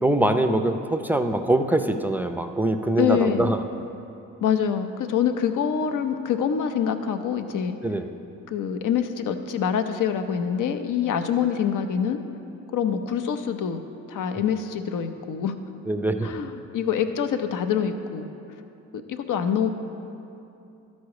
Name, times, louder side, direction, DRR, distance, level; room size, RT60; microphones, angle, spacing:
voice 1, 0.0-3.6 7.8-8.1 15.9-16.3, right 1 dB, 5° right, 7 dB, 0.5 m, -23 dB
voice 2, 3.0-3.5 4.4-7.8 8.5-12.2 12.7-13.8 14.1-15.6 16.2-18.3 18.9-19.7, left 8 dB, 60° left, 8 dB, 0.7 m, -25 dB
12.5 x 4.2 x 4.8 m, 2.7 s
supercardioid pair, 55°, 36 cm